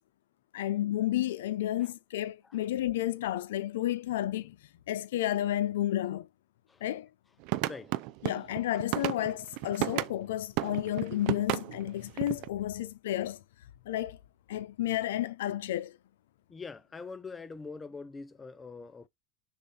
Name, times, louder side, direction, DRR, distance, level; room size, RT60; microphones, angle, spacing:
voice 1, 0.5-4.6 4.9-6.3 6.8-7.1 8.2-13.4 13.9-14.2 14.5-16.0, left 13 dB, 85° left, 0.6 m, -31 dB
sound 1, 7.4-10.2 10.6-12.5, right 19 dB, 60° right, 0.4 m, -33 dB
voice 2, 7.6-7.9 16.5-19.1, left 4 dB, 15° left, 0.6 m, -43 dB
6.7 x 2.6 x 5.5 m
supercardioid pair, 130°, 0 cm